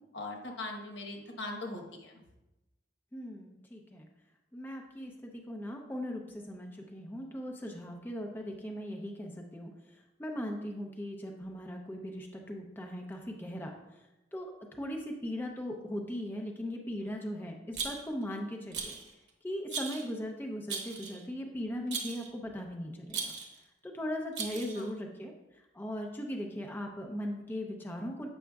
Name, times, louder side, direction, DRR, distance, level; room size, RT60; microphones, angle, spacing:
voice 1, 0.1-2.1 24.8-24.9, left 2 dB, 80° left, 2 dB, 1.1 m, -40 dB
voice 2, 3.1-4.1 4.5-9.7 10.2-13.7 14.3-19.0 19.4-23.3 23.8-25.3 25.7-28.3, equal, 10° left, 1 dB, 0.5 m, -39 dB
Rattle, 17.7-18.2 18.7-19.1 19.7-20.1 20.7-21.2 21.9-22.3 23.1-23.6 24.3-24.9, right 5 dB, 70° right, 0.9 m, -38 dB
7.5 x 6.1 x 2.3 m, 0.99 s
head